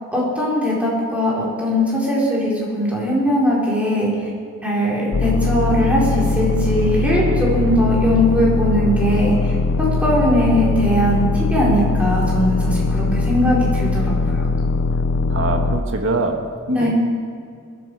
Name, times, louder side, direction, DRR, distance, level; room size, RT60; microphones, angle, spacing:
voice 1, 0.1-4.3 4.6-14.5 16.7-16.9, equal, 5° right, -6 dB, 4.5 m, -20 dB
sound 1, 5.1-15.8, left 3 dB, 75° left, 0.6 m, -20 dB
voice 2, 15.3-16.4 16.7-16.9, right 2 dB, 65° right, 4 dB, 1.6 m, -22 dB
21.5 x 11.0 x 4.8 m, 2.2 s
head